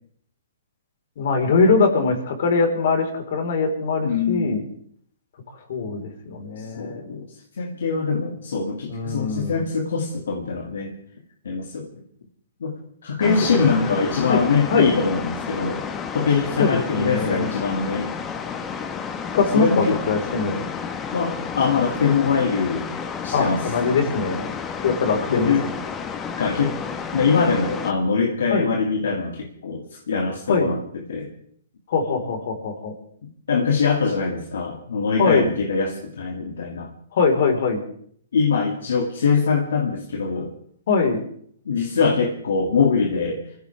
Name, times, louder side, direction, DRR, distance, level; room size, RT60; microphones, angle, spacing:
voice 1, 1.2-4.6 5.5-7.0 8.9-9.6 13.2-13.3 13.8-13.9 14.3-15.0 16.6-17.5 19.3-20.7 23.3-24.4 24.8-25.8 28.5-28.7 30.5-30.7 31.9-32.9 35.2-35.5 37.1-37.8 40.9-41.2, left 4 dB, 60° left, 4 dB, 4.3 m, -22 dB
voice 2, 4.0-4.7 6.6-7.3 7.5-10.9 11.4-11.9 12.6-12.7 13.0-15.8 16.1-18.1 19.5-20.0 21.1-22.9 23.2-23.6 25.3-25.6 26.4-26.7 27.1-31.3 33.5-36.9 38.3-40.5 41.7-43.4, left 5 dB, 75° left, 1 dB, 2.4 m, -23 dB
sound 1, 13.2-27.9, left 6 dB, 20° left, 1.3 m, -31 dB
25.0 x 16.0 x 3.5 m, 0.62 s
hypercardioid pair, 135°, 0 cm